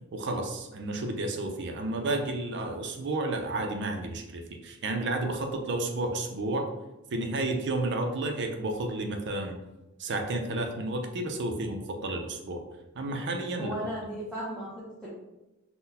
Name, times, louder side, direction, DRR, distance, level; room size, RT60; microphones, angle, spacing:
voice 1, 0.1-6.7 7.1-9.5 10.0-12.6 12.9-13.7, right 2 dB, 55° right, 4 dB, 0.5 m, -31 dB
voice 2, 13.5-15.1, equal, 5° right, -9 dB, 0.6 m, -36 dB
3.8 x 2.1 x 2.7 m, 1.0 s
head